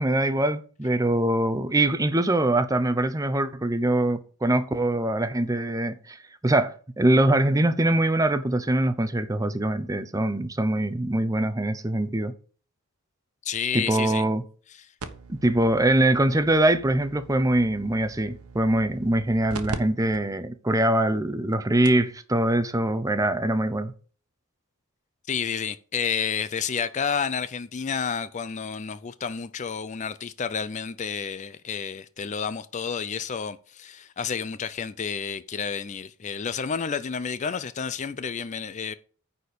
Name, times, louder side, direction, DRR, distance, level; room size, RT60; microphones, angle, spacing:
voice 1, 0.0-12.3 13.7-14.4 15.3-23.9, right 1 dB, 15° right, 0.6 m, -23 dB
voice 2, 13.4-14.2 25.3-38.9, left 6 dB, 35° left, 0.4 m, -30 dB
sound 1, 15.0-19.8 20.1-20.2 20.9-21.0 21.5-21.6 21.8-22.1 23.3-23.4, right 3 dB, 80° right, 1.1 m, -41 dB
9.5 x 4.3 x 6.7 m
head